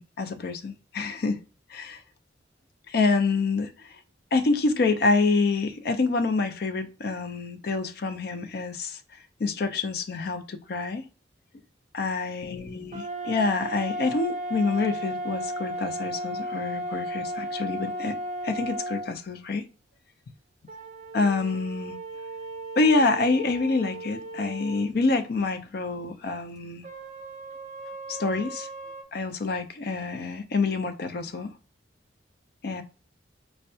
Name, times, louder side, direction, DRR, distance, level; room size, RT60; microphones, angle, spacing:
voice 1, 0.0-1.4 1.7-2.0 2.9-3.9 4.3-9.0 9.4-11.1 11.9-18.2 18.4-19.6 21.1-22.0 22.8-26.8 28.1-28.7 29.1-31.5 32.6-32.8, left 3 dB, 55° left, 0.4 m, -27 dB
sound 1, 12.9-19.1 20.7-24.9 26.8-29.0, right 1 dB, 40° right, 0.4 m, -35 dB
4.4 x 2.1 x 2.7 m
head